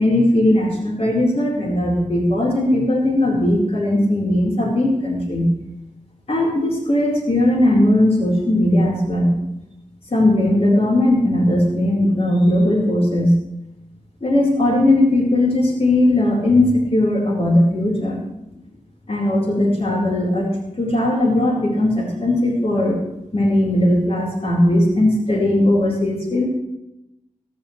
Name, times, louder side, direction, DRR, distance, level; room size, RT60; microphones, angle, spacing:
voice 1, 0.0-5.5 6.3-9.3 10.1-13.4 14.2-18.2 19.1-23.0 23.3-26.5, left 1 dB, 50° left, -3 dB, 4.4 m, -18 dB
15.5 x 15.5 x 3.3 m, 0.88 s
wide cardioid pair, 75°, 13 cm